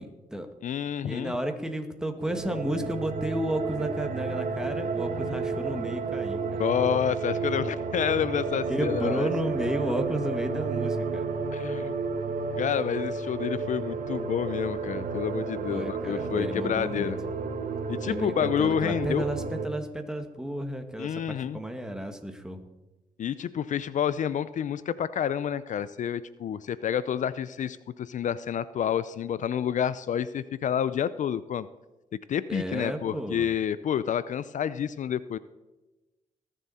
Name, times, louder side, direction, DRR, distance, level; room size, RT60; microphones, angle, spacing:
voice 1, 0.0-0.5 1.0-6.6 8.7-11.3 15.7-17.1 18.0-22.6 32.5-33.5, right 1 dB, 5° right, 5 dB, 1.9 m, -32 dB
voice 2, 0.6-1.4 6.6-9.3 11.5-12.0 12.6-17.2 17.9-19.2 21.0-21.6 23.2-31.7 32.3-35.4, left 9 dB, 60° left, 16 dB, 0.5 m, -29 dB
sound 1, 2.2-19.7, right 4 dB, 70° right, 1.3 m, -32 dB
19.0 x 7.4 x 4.2 m, 1.1 s
cardioid pair, 65°, 14 cm